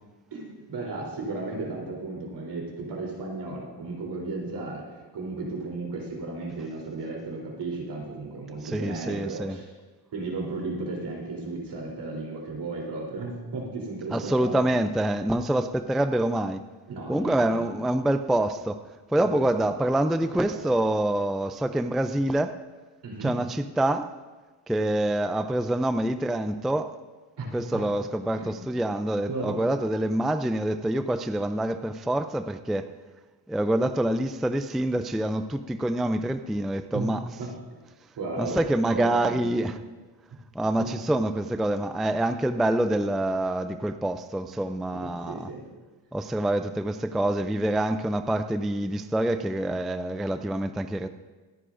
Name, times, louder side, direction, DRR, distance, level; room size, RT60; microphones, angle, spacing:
voice 1, 0.3-4.8 5.1-9.6 10.1-14.6 16.9-17.6 19.2-19.4 20.2-20.6 23.0-23.3 27.4-27.9 28.4-28.5 29.3-29.6 36.9-37.1 37.4-37.5 38.1-38.6 38.9-39.6 40.8-40.9 45.0-45.6, right 3 dB, 70° right, -2 dB, 3.5 m, -34 dB
voice 2, 8.6-9.6 14.1-16.6 17.1-18.8 19.1-22.6 23.2-24.1 24.7-26.9 27.5-32.9 33.5-37.2 38.4-39.8 40.5-45.5 46.1-51.1, right 1 dB, ahead, 9 dB, 0.3 m, -26 dB
24.0 x 9.8 x 2.6 m, 1.3 s
cardioid pair, 105°, 43 cm